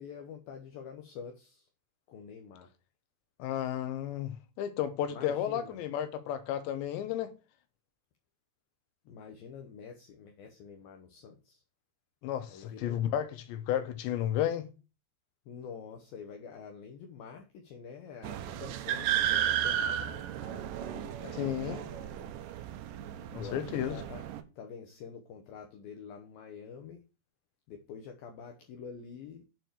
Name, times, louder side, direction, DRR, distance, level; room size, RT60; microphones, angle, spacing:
voice 1, 0.0-1.7 2.1-2.7 5.1-5.8 9.1-11.6 12.5-13.2 15.5-22.3 23.4-24.2 24.6-27.0 27.7-29.4, left 6 dB, 75° left, 2.3 m, -47 dB
voice 2, 3.4-7.3 12.2-14.7 21.4-21.8 23.3-24.0, left 10 dB, 90° left, 3.3 m, -33 dB
sound 1, 18.2-24.4, right 10 dB, 80° right, 2.0 m, -34 dB
7.6 x 4.6 x 6.7 m
omnidirectional pair, 4.9 m